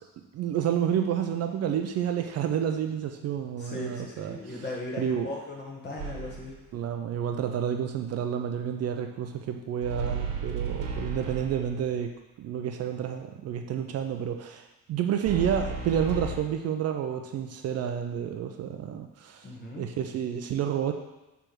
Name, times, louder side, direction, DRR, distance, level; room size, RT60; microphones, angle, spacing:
voice 1, 0.3-4.6 5.0-5.3 6.7-19.5 19.8-20.9, right 9 dB, 45° right, 5 dB, 0.5 m, -30 dB
voice 2, 3.6-6.6 19.4-19.8, left 2 dB, 30° left, -2 dB, 1.6 m, -37 dB
sound 1, 6.0-6.6 9.8-11.9 15.2-16.4, right 5 dB, 65° right, 1.1 m, -34 dB
6.3 x 3.4 x 6.0 m, 1.1 s
cardioid pair, 140°, 34 cm